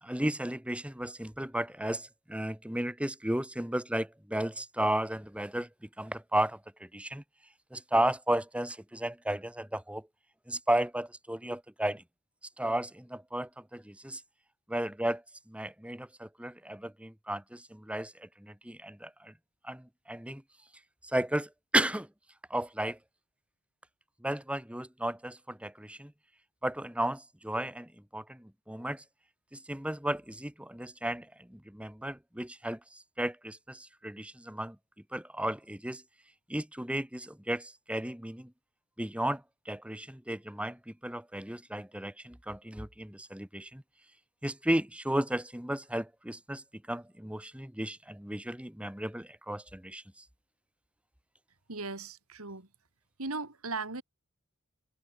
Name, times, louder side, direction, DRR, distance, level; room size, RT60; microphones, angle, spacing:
voice 1, 0.0-7.2 7.7-10.1 10.5-12.0 12.6-14.2 14.7-19.3 19.6-20.4 21.0-22.1 22.5-23.0 24.2-26.1 26.6-29.0 29.5-34.8 35.1-36.0 36.5-38.5 39.0-43.8 44.4-50.2, right 1 dB, 5° right, 1.6 m, -34 dB
voice 2, 51.7-52.7 53.2-54.0, right 3 dB, 70° right, 3.2 m, -37 dB
head